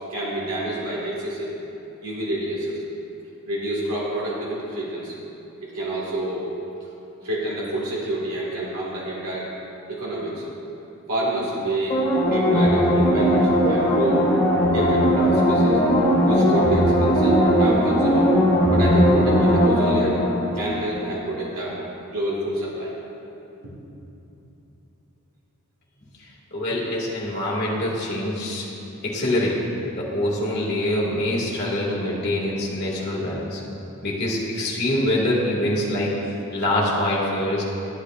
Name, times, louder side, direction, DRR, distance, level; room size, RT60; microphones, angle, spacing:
voice 1, 0.1-1.5 2.0-2.8 3.4-5.1 5.6-6.5 7.2-9.5 9.9-10.4 11.1-14.3 14.7-15.8 16.2-18.3 18.7-20.2 20.5-21.8 22.1-22.9 23.6-23.7, right 1 dB, 85° right, -5 dB, 1.8 m, -28 dB
sound 1, 11.9-21.3 21.6-21.7, equal, 30° left, 1.8 m, -19 dB
voice 2, 26.5-28.7 29.0-29.6 30.0-33.6 34.0-37.6, left 1 dB, 50° left, -6 dB, 1.9 m, -24 dB
13.0 x 8.4 x 2.4 m, 2.9 s
head